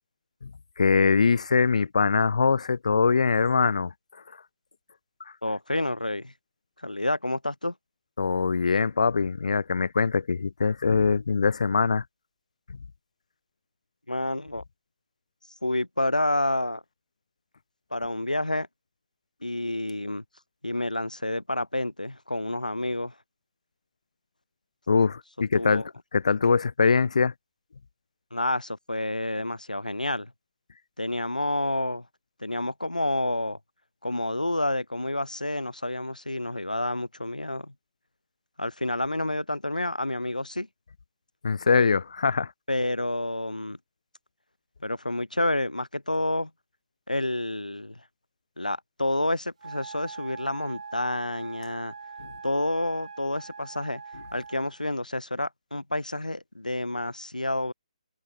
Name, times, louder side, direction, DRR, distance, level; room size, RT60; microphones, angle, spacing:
voice 1, 0.8-3.9 8.2-12.0 24.9-25.8 26.1-27.3 41.4-42.5, left 5 dB, 60° left, 1.0 m, -22 dB
voice 2, 5.4-6.3 6.8-7.7 14.1-14.6 15.6-16.8 17.9-18.7 19.4-20.2 20.6-23.1 25.6-25.9 28.3-30.3 31.0-32.1 32.4-33.6 34.0-37.7 38.6-40.7 42.7-43.8 44.8-46.5 47.1-48.0 48.6-51.9 52.4-54.0 54.3-57.7, left 1 dB, 85° left, 4.2 m, -29 dB
Wind instrument woodwind instrument, 49.6-54.8, right 5 dB, 55° right, 4.6 m, -42 dB
open air
figure-of-eight pair, 140°, 4 cm